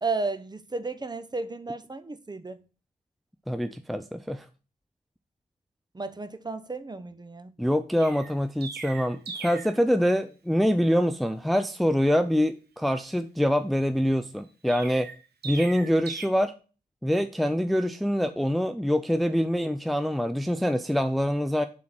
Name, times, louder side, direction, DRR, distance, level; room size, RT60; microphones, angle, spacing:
voice 1, 0.0-2.6 5.9-7.5, right 3 dB, 25° right, 0.8 m, -33 dB
voice 2, 3.5-4.5 7.6-15.1 15.4-16.5 17.0-21.7, equal, ahead, 0.5 m, -25 dB
Chirp tweet, 8.0-9.8 14.7-16.3, right 4 dB, 75° right, 1.2 m, -39 dB
7.3 x 3.8 x 6.1 m
cardioid pair, 55°, 17 cm